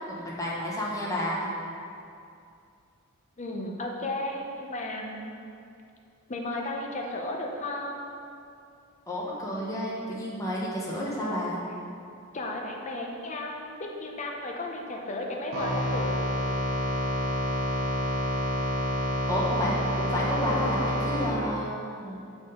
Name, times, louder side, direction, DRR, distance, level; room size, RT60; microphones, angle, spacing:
voice 1, 0.1-1.5 9.1-11.6 19.3-22.2, equal, 15° left, -5 dB, 1.1 m, -30 dB
voice 2, 3.4-5.3 6.3-8.2 12.3-16.3, left 1 dB, 35° left, 0 dB, 0.7 m, -34 dB
sound 1, 15.5-21.3, equal, 65° right, 1.3 m, -28 dB
6.2 x 4.4 x 5.0 m, 2.5 s
head